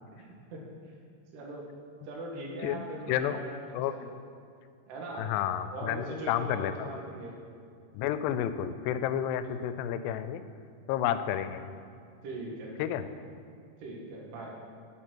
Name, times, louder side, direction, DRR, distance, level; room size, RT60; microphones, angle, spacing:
voice 1, 0.1-0.7 1.3-1.7 2.0-4.0 4.9-5.3 5.7-7.3 12.2-13.2 13.8-14.6, right 2 dB, 80° right, -2 dB, 3.6 m, -40 dB
voice 2, 2.6-3.4 3.7-3.9 5.2-6.9 7.9-10.4 10.9-11.7 12.8-13.0, left 10 dB, 90° left, 12 dB, 2.7 m, -31 dB
10.0 x 6.8 x 6.2 m, 2.4 s
omnidirectional pair, 4.7 m